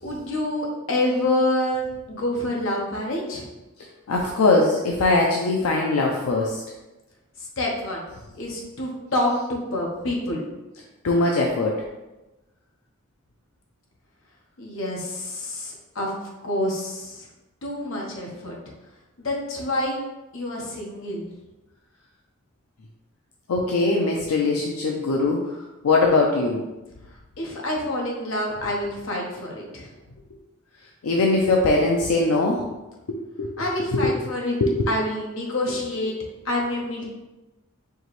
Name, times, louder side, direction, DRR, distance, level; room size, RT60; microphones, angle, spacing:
voice 1, 0.0-3.5 7.6-8.0 8.3-10.4 14.6-16.1 16.4-17.2 17.6-18.6 19.2-20.0 20.3-21.3 27.4-29.9 33.6-34.6 34.9-36.1 36.4-37.0, left 1 dB, 60° left, -1 dB, 0.9 m, -27 dB
voice 2, 4.1-6.6 11.0-11.8 23.5-25.4 25.8-26.6 31.0-32.6 33.4-33.5 33.9-34.1 34.6-34.9, left 3 dB, 80° left, 0 dB, 0.5 m, -21 dB
4.6 x 2.9 x 3.0 m, 1.0 s
head